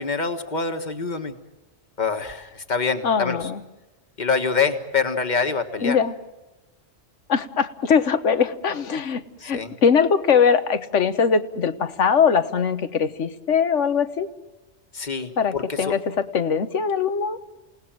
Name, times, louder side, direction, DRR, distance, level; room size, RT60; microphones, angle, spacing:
voice 1, 0.0-1.3 2.0-3.4 4.2-6.0 9.4-9.7 14.9-15.9, left 5 dB, 40° left, 7 dB, 1.7 m, -25 dB
voice 2, 3.0-3.6 5.8-6.2 7.3-14.3 15.4-17.4, left 6 dB, 90° left, 11 dB, 1.5 m, -21 dB
28.5 x 18.5 x 7.6 m, 1.0 s
omnidirectional pair, 1.2 m